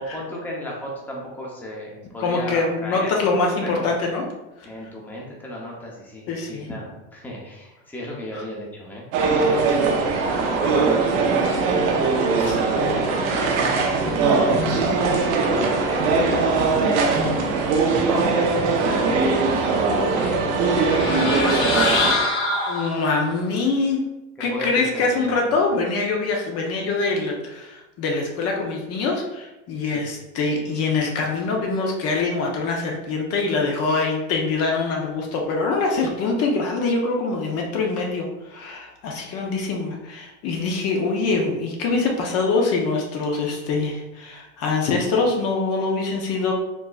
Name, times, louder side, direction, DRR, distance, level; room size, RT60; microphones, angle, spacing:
voice 1, 0.0-3.9 4.6-9.0 9.4-12.0 12.3-16.8 17.6-20.9 21.2-22.1 24.5-25.4 29.8-30.0, equal, 5° left, -4 dB, 0.7 m, -35 dB
voice 2, 2.2-4.2 6.3-6.7 8.3-8.4 12.4-13.0 21.5-21.6 22.7-24.0 24.4-46.5, left 3 dB, 45° left, 0 dB, 0.7 m, -24 dB
sound 1, 9.1-22.1, right 4 dB, 75° right, 0.8 m, -21 dB
sound 2, 14.0-19.1, right 1 dB, 55° right, 1.1 m, -32 dB
sound 3, 20.6-23.3, left 3 dB, 75° left, 1.4 m, -24 dB
4.5 x 2.8 x 2.4 m, 1.0 s
supercardioid pair, 130°, 35 cm